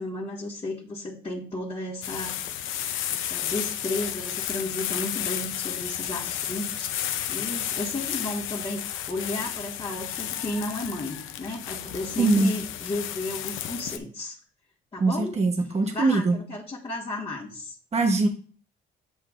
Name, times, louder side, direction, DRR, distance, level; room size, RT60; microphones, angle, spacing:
voice 1, 0.0-2.5 3.1-6.9 7.3-14.4 14.9-15.4 15.9-17.7, left 2 dB, 25° left, -7 dB, 1.7 m, -33 dB
sound 1, 2.0-14.0, left 11 dB, 85° left, 0.6 m, -32 dB
voice 2, 12.2-12.5 15.0-16.4 17.9-18.3, right 3 dB, 35° right, 3 dB, 1.0 m, -22 dB
7.9 x 7.3 x 2.5 m, 0.42 s
cardioid pair, 90°, 20 cm